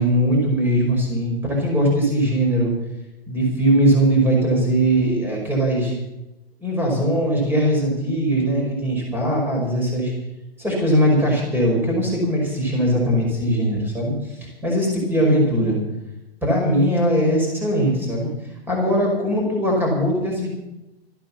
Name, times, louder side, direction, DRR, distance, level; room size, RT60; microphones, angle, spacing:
voice 1, 0.0-2.7 3.3-6.0 6.6-10.1 10.6-15.8 16.4-18.3 18.7-20.5, right 1 dB, 5° right, -1 dB, 5.2 m, -20 dB
14.0 x 11.5 x 7.3 m, 0.96 s
figure-of-eight pair, 125°, 32 cm